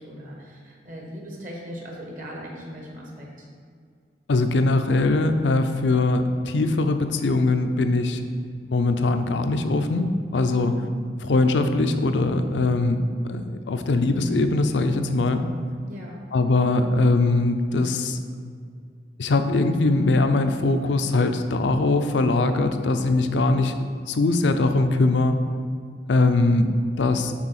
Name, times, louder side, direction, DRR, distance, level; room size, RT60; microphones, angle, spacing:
voice 1, 0.0-3.5 10.5-10.8 15.8-16.3, equal, 50° right, -1 dB, 1.1 m, -39 dB
voice 2, 4.3-8.2 8.6-10.7 11.2-15.5 16.3-18.2 19.2-25.4 26.1-27.3, left 2 dB, 85° left, 8 dB, 0.5 m, -21 dB
6.3 x 4.0 x 5.7 m, 2.1 s
head